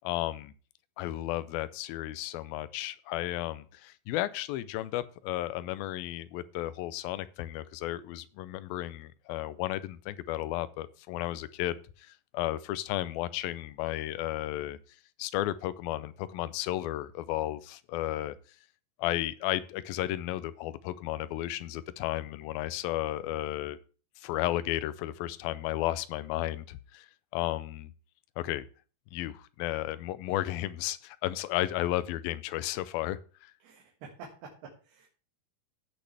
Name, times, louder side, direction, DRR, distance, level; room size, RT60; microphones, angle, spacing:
voice 1, 0.0-0.5 1.0-14.8 15.2-18.4 19.0-23.8 24.2-27.1 27.3-27.9 28.4-28.6 29.1-33.5, left 14 dB, 80° left, 16 dB, 2.3 m, -33 dB
voice 2, 33.6-35.1, right 5 dB, 85° right, -1 dB, 3.7 m, -48 dB
16.0 x 6.5 x 3.4 m, 0.37 s
omnidirectional pair, 4.5 m